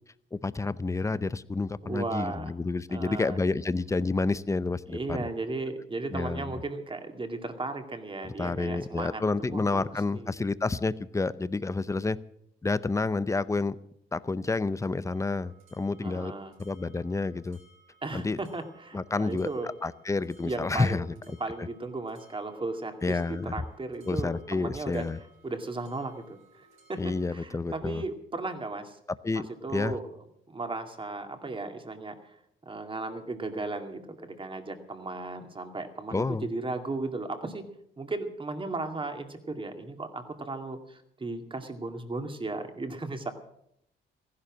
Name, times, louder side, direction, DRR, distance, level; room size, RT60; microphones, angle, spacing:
voice 1, 0.3-5.3 6.1-6.5 8.2-12.2 12.6-13.8 14.1-16.3 16.6-17.6 18.1-18.4 18.9-19.5 19.8-21.1 23.0-23.5 24.1-25.2 27.0-28.0 29.2-29.5 29.7-29.9 36.1-36.5, left 3 dB, 15° left, 16 dB, 0.6 m, -29 dB
voice 2, 1.8-2.5 2.9-3.4 4.9-10.3 16.0-16.5 18.0-19.7 20.4-25.1 25.4-29.0 29.3-30.0 30.5-32.4 32.6-37.6 38.0-43.3, right 3 dB, 25° right, 6 dB, 2.3 m, -36 dB
sound 1, 15.1-27.3, right 4 dB, 85° right, 5.8 m, -62 dB
15.0 x 11.5 x 7.4 m, 0.75 s
cardioid pair, 90°, 20 cm